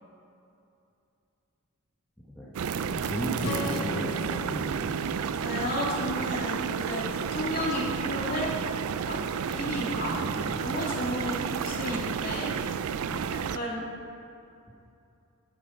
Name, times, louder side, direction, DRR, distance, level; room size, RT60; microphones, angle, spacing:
sound 1, 2.5-13.6, right 7 dB, 85° right, 0.4 m, -31 dB
voice 1, 2.8-4.1 4.4-4.9 10.0-10.5 13.1-13.3, equal, 5° left, -8 dB, 1.3 m, -36 dB
Strum, 3.4-7.7, left 3 dB, 85° left, 0.8 m, -39 dB
voice 2, 5.3-8.5 9.0-10.1 10.6-12.6 13.3-13.8, left 1 dB, 40° left, -4 dB, 2.5 m, -33 dB
sound 2, 9.1-9.2 9.4-12.5, right 4 dB, 65° right, 0.8 m, -47 dB
13.0 x 7.2 x 5.2 m, 2.7 s
head